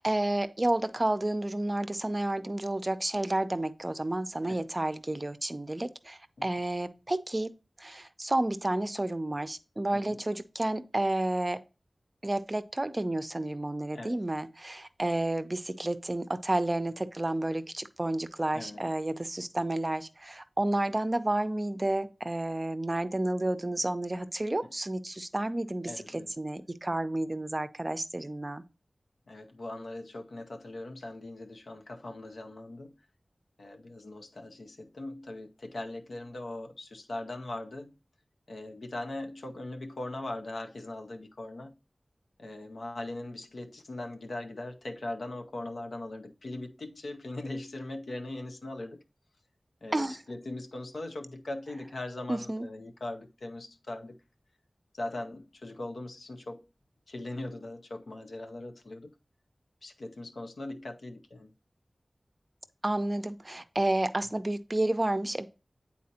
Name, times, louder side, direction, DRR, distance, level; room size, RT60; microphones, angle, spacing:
voice 1, 0.0-7.5 7.8-11.6 12.2-28.6 49.9-50.2 52.3-52.7 62.8-65.5, right 1 dB, 30° right, 0.5 m, -31 dB
voice 2, 18.5-18.8 25.8-26.3 29.3-32.9 33.6-37.9 38.5-41.7 42.4-49.0 49.8-54.2 54.9-56.7 57.1-59.1 59.8-61.5, left 2 dB, 85° left, 0.7 m, -40 dB
8.5 x 4.2 x 2.8 m
wide cardioid pair, 55°, 0 cm